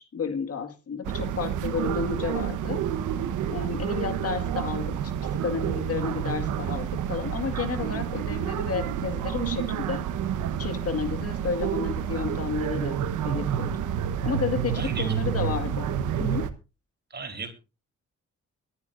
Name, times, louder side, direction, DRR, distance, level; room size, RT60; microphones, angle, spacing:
voice 1, 0.0-2.8 3.5-4.9 5.4-10.0 10.6-13.0 13.2-13.7 14.2-15.9 16.2-16.4, left 6 dB, 50° left, 8 dB, 2.0 m, -31 dB
sound 1, 1.1-16.5, right 9 dB, 85° right, 1.2 m, -29 dB
voice 2, 14.8-15.1 17.1-17.5, right 4 dB, 35° right, 6 dB, 3.6 m, -35 dB
22.5 x 10.5 x 2.6 m, 0.30 s
cardioid pair, 90°, 30 cm